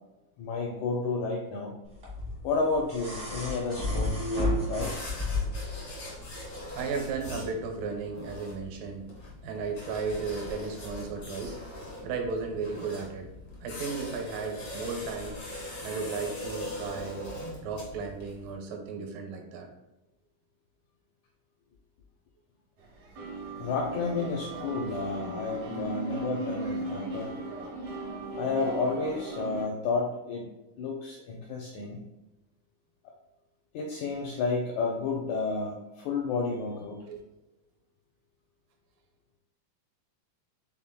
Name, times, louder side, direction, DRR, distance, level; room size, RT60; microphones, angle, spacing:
voice 1, 0.4-1.7 2.4-4.9 23.6-27.3 28.4-30.5 30.8-32.0 33.7-37.0, left 4 dB, 85° left, 0 dB, 1.6 m, -31 dB
sound 1, 2.0-5.8 7.1-7.2, left 1 dB, 45° right, 0.9 m, -31 dB
sound 2, 4.7-18.5, left 1 dB, 60° left, 0.9 m, -41 dB
voice 2, 6.7-9.1 9.4-11.6 12.0-13.3 13.6-15.4 15.8-19.7 37.1-37.2, right 4 dB, 80° right, 2 dB, 2.4 m, -35 dB
sound 3, 22.8-29.6, right 2 dB, 65° right, 2.4 m, -37 dB
5.8 x 3.6 x 2.2 m, 1.0 s
omnidirectional pair, 4.0 m